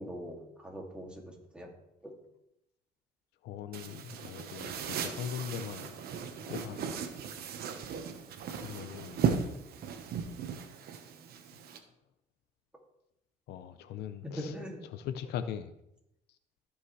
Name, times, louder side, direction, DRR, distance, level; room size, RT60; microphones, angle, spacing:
voice 1, 0.0-1.7 2.0-2.1 14.2-14.8, equal, 5° right, -1 dB, 2.3 m, -42 dB
voice 2, 3.4-6.0 6.4-7.0 8.5-9.2 11.5-11.8 13.5-14.6 14.8-15.7 16.3-16.4, left 9 dB, 75° left, 11 dB, 0.6 m, -41 dB
sound 1, 3.7-11.8, right 7 dB, 65° right, 1.1 m, -36 dB
14.0 x 5.6 x 3.2 m, 0.84 s
cardioid pair, 110°, 17 cm